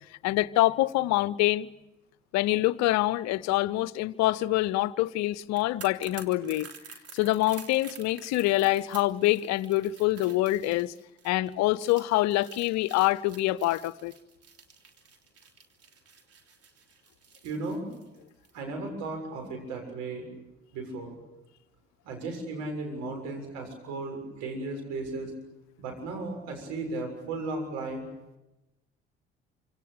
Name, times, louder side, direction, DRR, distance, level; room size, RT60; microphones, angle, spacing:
voice 1, 0.2-1.7 2.3-6.7 7.1-10.9 11.2-14.1, left 16 dB, 65° left, 0.8 m, -25 dB
sound 1, 5.4-18.6 18.9-19.1, right 6 dB, 50° right, 3.5 m, -50 dB
voice 2, 17.4-17.9 18.5-20.3 20.7-21.1 22.0-25.3 25.8-28.0, right 3 dB, 70° right, 7.1 m, -35 dB
27.0 x 26.5 x 6.8 m
hypercardioid pair, 50°, 30 cm